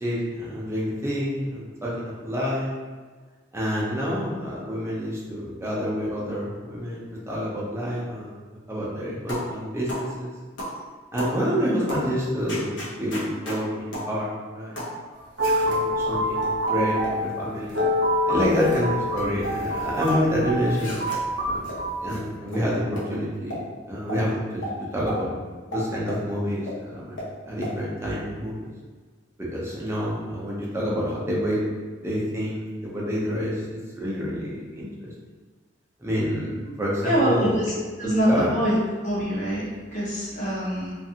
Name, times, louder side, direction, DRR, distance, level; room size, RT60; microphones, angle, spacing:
voice 1, 0.0-2.7 3.5-8.3 8.7-10.3 11.1-14.3 14.5-14.9 15.6-17.8 18.3-21.0 21.5-21.6 22.0-25.3 25.7-28.7 29.4-31.7 32.0-35.1 36.0-36.5 36.8-37.5 38.3-38.5, equal, 15° right, -6 dB, 0.5 m, -28 dB
sound 1, 9.3-9.5 9.9-10.1 10.6-10.8 11.2-11.4 11.9-12.1 12.5-13.6 13.9-14.1 14.8-15.0 15.4-15.8 16.4-17.2 17.7-17.9 18.4-18.9 19.2-20.2 20.7-21.2 21.6-21.8 22.1-22.2 22.5-22.6 23.0-23.1 23.5-23.6 24.1-24.2 24.6-24.7 25.1-25.2 25.7-26.2 26.7-26.8 27.2-27.3 27.6-27.7, equal, 75° left, 0.7 m, -34 dB
sound 2, 15.2-22.1, equal, 60° right, 0.7 m, -26 dB
voice 2, 37.0-38.8 39.0-41.0, equal, 40° left, -6 dB, 0.8 m, -25 dB
2.5 x 2.5 x 2.7 m, 1.4 s
head